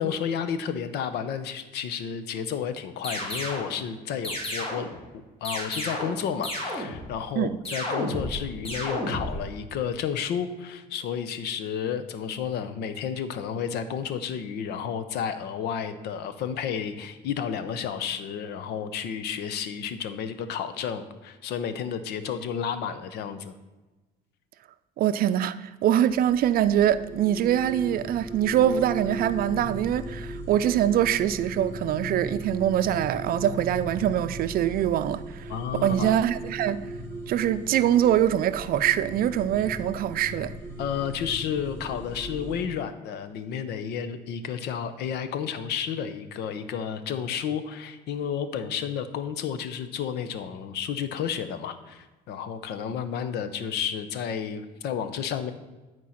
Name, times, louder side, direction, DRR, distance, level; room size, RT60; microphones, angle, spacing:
voice 1, 0.0-4.9 5.1-23.5 35.5-36.2 40.8-55.5, left 8 dB, 80° left, 0.8 m, -31 dB
sound 1, 3.0-3.7 4.2-5.0 5.4-6.2 6.4-7.1 7.6-8.4 8.6-9.3, left 1 dB, 35° left, 3.1 m, -31 dB
voice 2, 25.0-35.4 35.8-36.8 37.3-40.5, right 11 dB, 60° right, 0.5 m, -24 dB
sound 2, 26.1-42.6, right 1 dB, 15° left, 2.2 m, -38 dB
11.0 x 4.6 x 5.8 m
cardioid pair, 110°, 17 cm